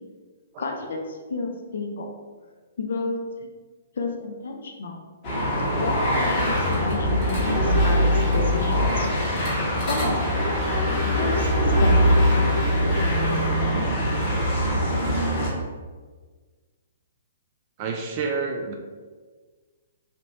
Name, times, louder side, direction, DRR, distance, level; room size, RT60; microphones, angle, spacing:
voice 1, 0.6-2.1 2.8-3.2 4.0-5.0 5.8-9.1 9.8-10.0 11.1-12.2, left 3 dB, 65° left, 2 dB, 0.5 m, -31 dB
sound 1, 5.2-15.5, equal, 35° left, 1.5 m, -22 dB
sound 2, 7.3-9.0 9.7-13.4, equal, 10° right, 0.8 m, -32 dB
voice 2, 17.8-18.7, right 4 dB, 40° right, 1 dB, 0.4 m, -28 dB
3.2 x 2.6 x 2.9 m, 1.4 s
figure-of-eight pair, 125°, 0 cm